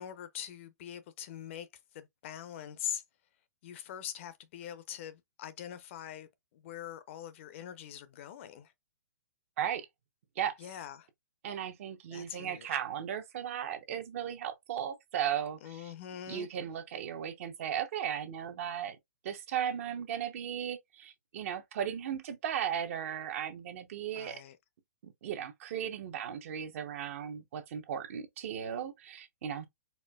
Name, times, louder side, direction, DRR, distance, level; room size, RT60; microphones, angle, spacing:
voice 1, 0.0-1.7 1.9-3.0 3.6-8.7 10.6-11.1 12.1-12.8 15.6-16.5 24.1-24.6, left 9 dB, 45° left, 0.5 m, -43 dB
voice 2, 11.4-15.8 16.3-19.0 19.2-24.4 25.0-29.7, right 9 dB, 50° right, 0.7 m, -36 dB
4.3 x 2.2 x 2.2 m
hypercardioid pair, 145°, 9 cm